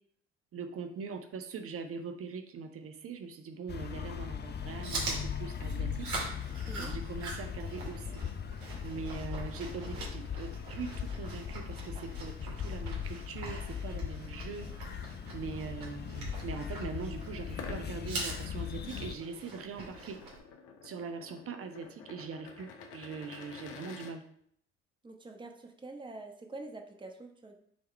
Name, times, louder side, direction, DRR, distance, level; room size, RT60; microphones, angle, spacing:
voice 1, 0.5-6.1 6.8-8.1 8.8-14.7 15.3-20.2 20.8-24.2, right 5 dB, 45° right, 7 dB, 0.9 m, -42 dB
sound 1, 3.7-19.2, left 7 dB, 30° left, 0.6 m, -39 dB
Chewing mastication, 4.5-20.4, right 3 dB, 60° right, 2.5 m, -43 dB
voice 2, 6.6-7.0 25.0-27.5, right 2 dB, 15° right, 4 dB, 1.1 m, -45 dB
sound 2, 17.5-24.1, left 5 dB, 70° left, 1.0 m, -49 dB
6.6 x 3.5 x 4.6 m, 0.66 s
hypercardioid pair, 60°, 32 cm